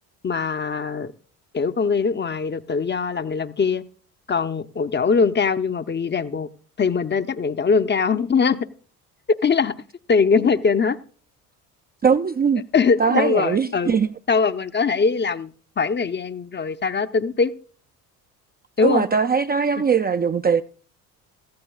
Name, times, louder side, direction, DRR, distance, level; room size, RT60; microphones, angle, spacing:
voice 1, 0.2-1.1 1.5-3.8 4.3-6.5 6.8-8.7 9.3-9.7 10.1-11.0 12.7-14.0 14.3-17.5 18.8-19.1, left 5 dB, 25° left, 0.7 m, -21 dB
voice 2, 12.0-12.6 13.0-14.1 18.8-20.6, right 6 dB, 20° right, 0.5 m, -20 dB
18.0 x 14.5 x 2.4 m
hypercardioid pair, 60°, 46 cm